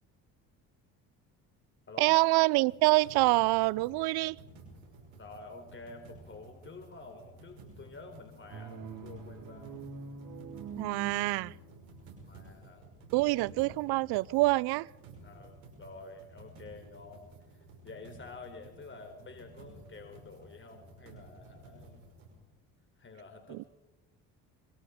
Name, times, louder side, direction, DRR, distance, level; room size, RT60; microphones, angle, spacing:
voice 1, 2.0-4.4 10.8-11.5 13.1-14.9 23.5-23.6, right 21 dB, 70° right, 0.6 m, -26 dB
sound 1, 2.5-22.4, right 2 dB, 90° right, 6.2 m, -53 dB
voice 2, 5.2-9.7 12.3-12.9 15.2-17.3 17.5-22.0 23.0-23.7, left 3 dB, 30° left, 4.1 m, -49 dB
sound 2, 8.5-12.2, right 5 dB, 55° right, 4.1 m, -44 dB
27.0 x 23.0 x 5.1 m
supercardioid pair, 65°, 39 cm